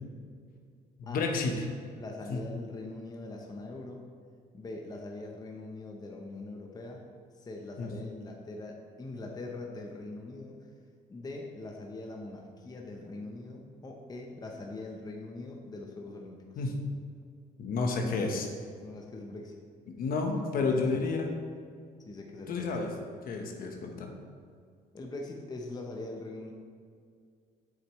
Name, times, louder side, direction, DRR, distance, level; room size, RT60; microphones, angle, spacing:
voice 1, 1.0-1.7 2.3-2.4 7.8-7.9 16.6-16.7 17.6-18.5 20.0-21.3 22.5-22.9 23.3-24.1, left 3 dB, 60° left, 2 dB, 1.1 m, -30 dB
voice 2, 2.0-4.0 4.5-7.0 7.3-10.6 11.1-16.6 18.8-19.5 20.5-21.1 22.0-22.7 23.6-23.8 24.9-26.5, left 2 dB, 25° left, 1 dB, 0.8 m, -42 dB
8.0 x 7.2 x 3.1 m, 2.2 s
cardioid pair, 110°, 17 cm